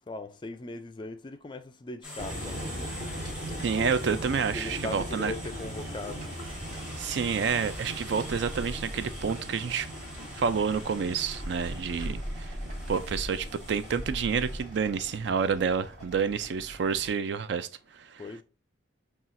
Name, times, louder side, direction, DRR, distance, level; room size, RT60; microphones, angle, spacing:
voice 1, 0.1-2.9 3.6-3.7 4.5-6.2 18.2-18.4, left 2 dB, 25° left, 0.3 m, -39 dB
sound 1, 2.0-14.6, equal, 5° right, 0.9 m, -41 dB
sound 2, 2.2-17.1, right 1 dB, 40° right, 1.5 m, -40 dB
voice 2, 3.6-5.3 7.0-9.9 10.3-12.6 12.9-18.2, right 6 dB, 60° right, 0.4 m, -29 dB
5.6 x 2.4 x 2.5 m
head